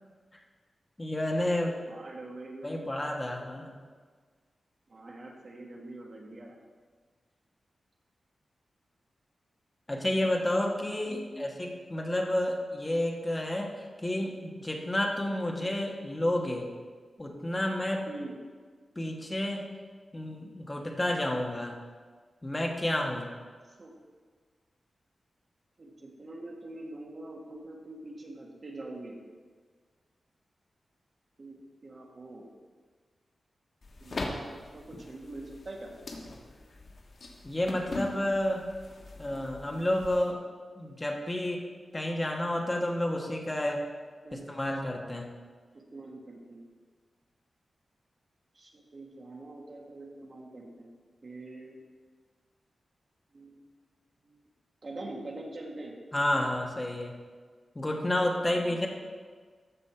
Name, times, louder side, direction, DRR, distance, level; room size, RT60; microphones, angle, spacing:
voice 1, 1.0-1.7 2.6-3.7 9.9-13.7 14.0-16.7 17.2-18.1 19.0-19.7 20.1-21.7 22.4-23.3 37.4-38.6 39.2-40.4 40.7-41.6 41.9-43.8 44.3-45.3 56.1-57.1 57.7-58.9, left 1 dB, 20° left, 1 dB, 1.2 m, -30 dB
voice 2, 1.6-2.9 4.9-6.6 11.0-11.5 18.1-18.3 23.8-23.9 25.8-29.2 31.4-32.5 34.0-35.9 44.2-44.5 45.9-46.6 48.5-50.9 51.2-51.8 53.3-53.6 54.2-54.4 54.8-56.0 58.6-58.9, right 2 dB, 40° right, 0 dB, 1.5 m, -44 dB
sound 1, 33.8-40.3, left 2 dB, 50° left, 1.2 m, -41 dB
14.0 x 5.4 x 4.4 m, 1.5 s
wide cardioid pair, 135°, 0 cm